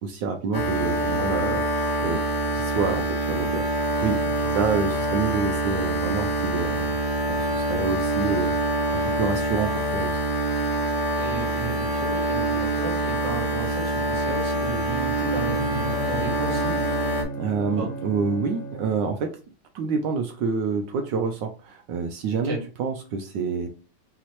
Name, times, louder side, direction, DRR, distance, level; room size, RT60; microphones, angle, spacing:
voice 1, 0.0-2.2 2.5-4.2 4.5-7.0 7.3-10.1 17.4-19.4 19.7-23.7, right 5 dB, 75° right, 5 dB, 1.1 m, -28 dB
sound 1, 0.5-17.2, right 1 dB, 35° left, 0.8 m, -25 dB
voice 2, 4.2-4.5 11.2-16.7 17.8-17.9 22.4-22.6, right 4 dB, 50° right, -1 dB, 1.5 m, -34 dB
Bowed string instrument, 15.1-19.2, right 2 dB, 60° left, 1.0 m, -35 dB
5.6 x 2.9 x 3.0 m, 0.36 s
omnidirectional pair, 2.4 m